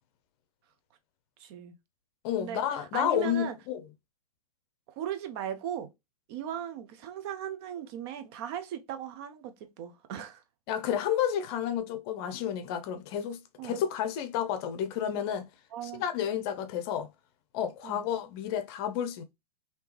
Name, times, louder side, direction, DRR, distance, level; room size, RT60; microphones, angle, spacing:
voice 1, 1.4-1.7 2.4-3.6 4.9-5.9 6.3-10.4 13.6-13.8 15.7-16.0 17.8-18.0, right 10 dB, 40° right, 0.6 m, -38 dB
voice 2, 2.2-3.8 10.7-15.5 16.0-17.1 17.5-19.2, left 9 dB, 40° left, 0.6 m, -31 dB
3.4 x 2.8 x 3.0 m
figure-of-eight pair, 105°, 19 cm